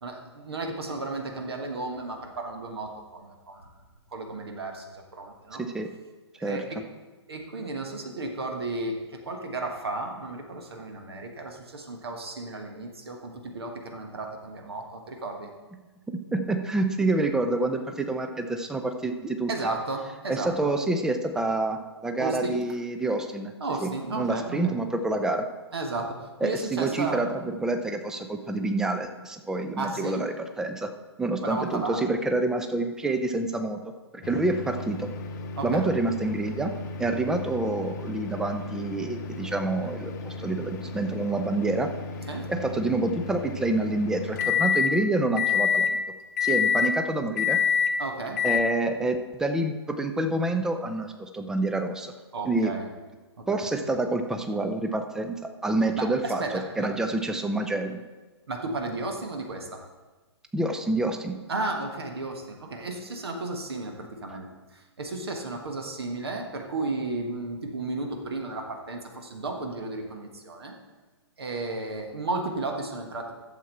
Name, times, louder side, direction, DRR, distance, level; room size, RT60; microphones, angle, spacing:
voice 1, 0.0-3.6 4.1-5.6 6.4-6.8 7.3-15.5 19.5-20.7 22.2-22.6 23.6-24.7 25.7-27.3 29.8-30.3 31.4-32.1 35.6-35.9 42.3-42.5 48.0-48.4 52.3-52.9 53.4-53.5 56.0-56.9 58.5-59.8 61.5-70.8 71.4-73.4, right 2 dB, 60° right, 3 dB, 1.4 m, -33 dB
voice 2, 5.6-5.9 6.4-6.6 16.1-19.5 20.3-23.5 23.8-25.5 26.4-30.9 31.2-33.8 34.1-35.1 35.6-36.7 37.0-41.9 42.5-46.0 46.4-47.6 48.4-52.1 52.5-52.7 53.5-55.4 55.6-58.0 60.5-61.4, right 2 dB, 5° right, 6 dB, 0.5 m, -27 dB
sound 1, 34.2-44.9 45.4-45.9 46.4-46.9 47.4-47.9 48.4-48.6, left 6 dB, 40° left, 0.9 m, -29 dB
11.5 x 7.3 x 4.3 m, 1.2 s
figure-of-eight pair, 120°, 15 cm